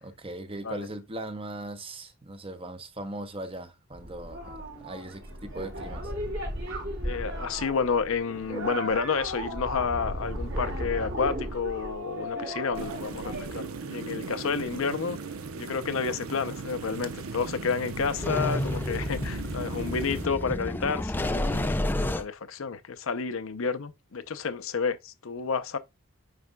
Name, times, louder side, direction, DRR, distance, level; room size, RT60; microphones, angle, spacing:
voice 1, 0.0-6.1, right 1 dB, 25° right, 0.9 m, -39 dB
sound 1, 4.0-13.6, equal, 60° right, 3.8 m, -35 dB
voice 2, 7.0-15.2 15.6-25.8, left 5 dB, 70° left, 0.6 m, -30 dB
sound 2, 12.7-20.3, right 4 dB, 80° right, 0.8 m, -38 dB
sound 3, 17.9-22.2, left 1 dB, 10° left, 0.4 m, -30 dB
9.5 x 4.9 x 2.2 m
head